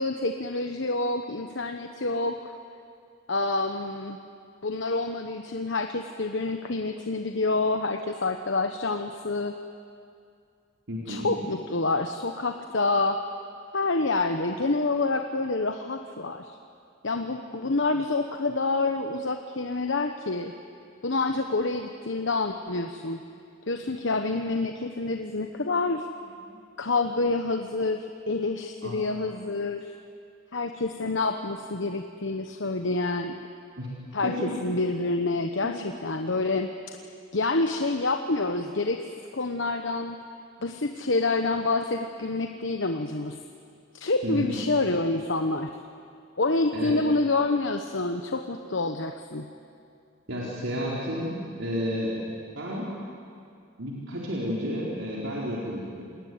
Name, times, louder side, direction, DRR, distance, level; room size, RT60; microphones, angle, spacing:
voice 1, 0.0-2.5 3.3-4.2 4.6-9.6 11.1-13.2 13.7-16.6 17.0-20.5 21.0-23.2 23.7-26.1 26.8-29.9 30.5-33.4 34.1-37.0 37.3-40.2 40.6-43.4 43.9-45.7 46.4-49.5, left 3 dB, 65° left, 6 dB, 1.1 m, -27 dB
voice 2, 10.9-11.3 26.5-26.6 28.8-29.0 33.8-33.9 34.2-34.5 44.2-44.5 46.7-46.9 50.3-52.1 52.6-52.9 53.8-56.0, equal, 75° right, -4 dB, 4.7 m, -31 dB
27.5 x 21.5 x 9.6 m, 2.3 s
head